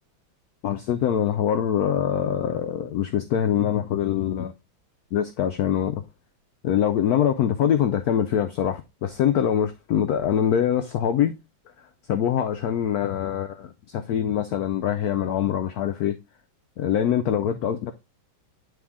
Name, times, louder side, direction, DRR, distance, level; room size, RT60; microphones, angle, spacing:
voice 1, 0.6-4.5 5.1-6.0 6.6-11.4 12.1-16.2 16.8-17.9, left 9 dB, 85° left, 0.8 m, -24 dB
9.2 x 3.4 x 3.5 m
omnidirectional pair, 2.2 m